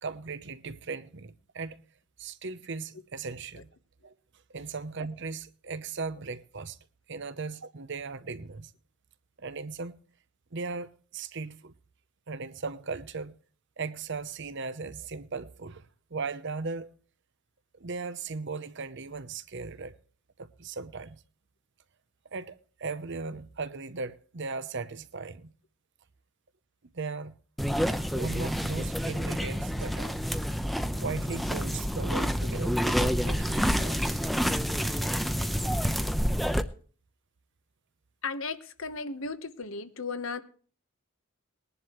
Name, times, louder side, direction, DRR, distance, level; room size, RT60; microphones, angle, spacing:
voice 1, 0.0-1.8 2.2-3.7 4.0-4.1 4.5-6.8 7.1-8.7 9.4-9.9 10.5-11.7 12.3-13.3 13.8-16.9 17.7-19.9 20.4-21.2 22.3-25.5 26.9-27.4 28.1-30.3 31.0-34.2, right 4 dB, 55° right, 0.8 m, -37 dB
sound 1, 27.6-36.6, equal, ahead, 0.7 m, -28 dB
voice 2, 38.2-40.4, left 4 dB, 65° left, 1.2 m, -35 dB
20.5 x 11.0 x 3.1 m
head